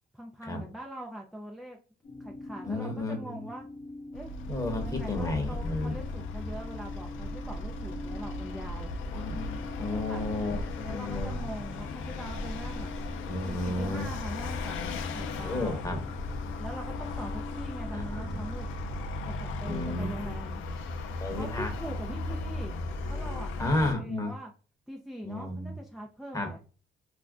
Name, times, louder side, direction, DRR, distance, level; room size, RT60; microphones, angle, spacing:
voice 1, 0.1-1.8 2.2-3.7 4.1-4.3 4.8-8.9 9.8-10.2 10.8-12.9 13.5-16.1 16.6-18.7 19.4-20.6 21.3-22.7 23.1-24.5 24.9-26.6, equal, ahead, 0 dB, 0.4 m, -42 dB
sound 1, 2.0-19.1, left 2 dB, 40° left, 1.0 m, -45 dB
voice 2, 2.6-3.4 4.5-6.0 9.1-11.3 13.2-14.1 15.4-16.0 17.9-18.4 19.7-20.3 21.2-21.7 23.6-24.3 25.2-25.7 26.3-26.5, left 2 dB, 15° left, 3 dB, 0.9 m, -32 dB
Vehicle, 4.1-23.9, left 2 dB, 80° left, 0.5 m, -36 dB
2.4 x 2.1 x 3.5 m, 0.38 s
cardioid pair, 90°, 20 cm